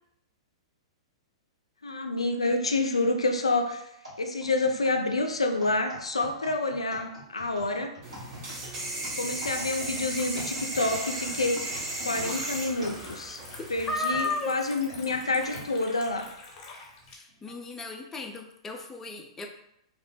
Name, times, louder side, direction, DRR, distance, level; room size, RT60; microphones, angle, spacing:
voice 1, 1.8-3.9 4.2-7.9 9.2-11.6 12.0-13.4 13.7-16.3, left 2 dB, 80° left, 4 dB, 0.4 m, -28 dB
sound 1, 4.0-13.6 14.1-15.7 16.3-16.4 17.3-17.5, equal, 80° right, 1.4 m, -45 dB
sound 2, 8.0-14.0, right 1 dB, 40° right, 0.9 m, -35 dB
Liquid, 8.8-17.2, left 3 dB, 40° left, 0.8 m, -48 dB
voice 2, 13.6-14.6 17.1-19.5, left 2 dB, 15° left, 2 dB, 0.4 m, -34 dB
2.9 x 2.0 x 3.1 m, 0.78 s
figure-of-eight pair, 105°, 3 cm